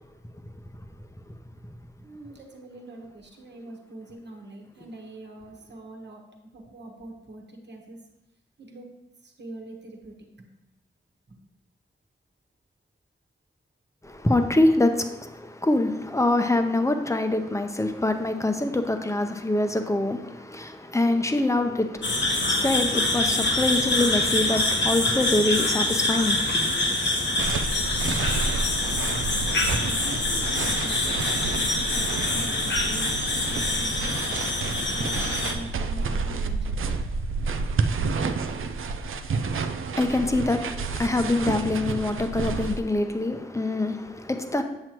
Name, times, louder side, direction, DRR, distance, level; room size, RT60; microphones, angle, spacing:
voice 1, 2.0-6.2 6.5-8.0 8.6-8.9 9.2-10.5 11.3-11.4 30.0-34.1 34.9-36.9, right 2 dB, 60° right, 1.3 m, -43 dB
voice 2, 14.0-26.8 39.9-44.6, left 2 dB, 15° left, 0.8 m, -25 dB
sound 1, 22.0-35.5, left 2 dB, 60° left, 1.2 m, -25 dB
sound 2, 27.4-42.8, right 4 dB, 90° right, 0.5 m, -30 dB
7.7 x 7.6 x 3.0 m
wide cardioid pair, 70°, 20 cm